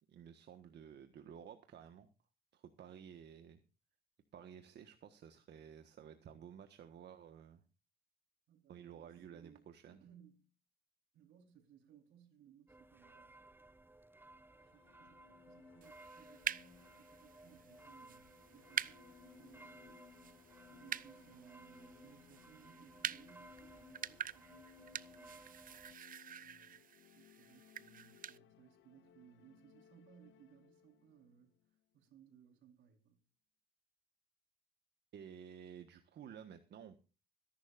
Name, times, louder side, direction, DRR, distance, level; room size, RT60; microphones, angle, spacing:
voice 1, 0.1-2.1 2.5-3.6 4.3-7.6 8.7-10.0 35.1-37.0, right 8 dB, 60° right, 1.4 m, -53 dB
voice 2, 8.5-10.5 11.1-13.4 14.6-20.1 20.7-25.5 26.2-33.2, right 8 dB, 80° right, 4.3 m, -64 dB
sound 1, 12.7-26.0, right 2 dB, 10° right, 0.7 m, -59 dB
sound 2, 14.3-32.3, left 12 dB, 75° left, 1.1 m, -64 dB
sound 3, 15.8-28.4, right 9 dB, 45° right, 0.6 m, -47 dB
25.0 x 11.5 x 2.5 m
supercardioid pair, 80°, 19 cm